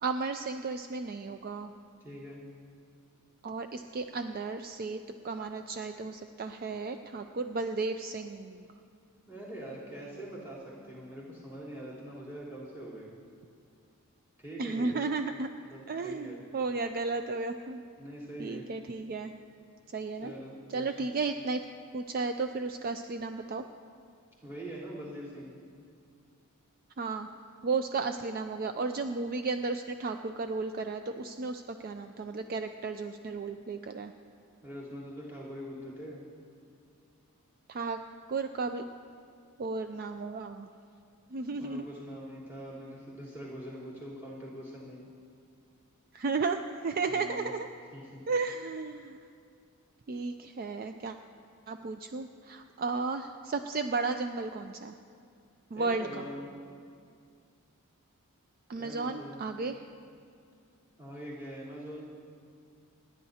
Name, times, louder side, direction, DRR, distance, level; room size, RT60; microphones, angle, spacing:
voice 1, 0.0-1.7 3.4-8.7 14.6-15.5 15.9-17.8 18.4-19.3 19.9-20.3 20.7-21.6 21.9-23.6 27.0-27.3 27.6-34.1 37.7-38.0 38.3-38.8 39.6-40.7 41.3-41.9 46.1-47.7 48.3-49.2 50.1-51.2 51.7-54.9 55.7-56.3 58.7-59.8, right 4 dB, 40° right, 7 dB, 0.4 m, -34 dB
voice 2, 2.0-2.4 9.3-13.1 14.4-15.1 15.7-16.4 18.0-18.6 20.2-21.1 24.4-25.5 34.6-36.2 41.5-45.1 47.1-47.5 47.9-48.2 55.7-56.5 58.7-59.4 61.0-62.0, equal, 10° right, -8 dB, 3.6 m, -43 dB
28.5 x 10.5 x 2.8 m, 2.3 s
head